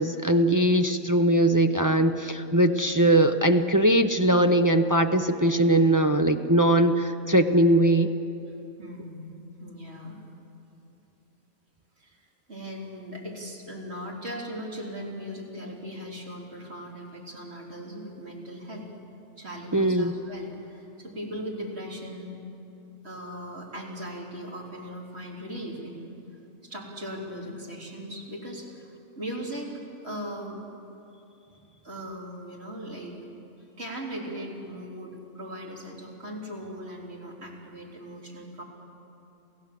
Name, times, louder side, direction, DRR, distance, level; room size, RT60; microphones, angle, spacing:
voice 1, 0.0-8.1 19.7-20.1, right 1 dB, 30° right, 6 dB, 0.3 m, -21 dB
voice 2, 8.8-9.3 9.6-10.2 12.0-12.2 12.5-18.9 19.4-22.4 23.0-26.2 26.6-30.6 31.8-33.2 33.8-38.6, equal, 50° right, -2 dB, 3.8 m, -38 dB
28.5 x 16.0 x 7.6 m, 2.7 s
omnidirectional pair, 1.4 m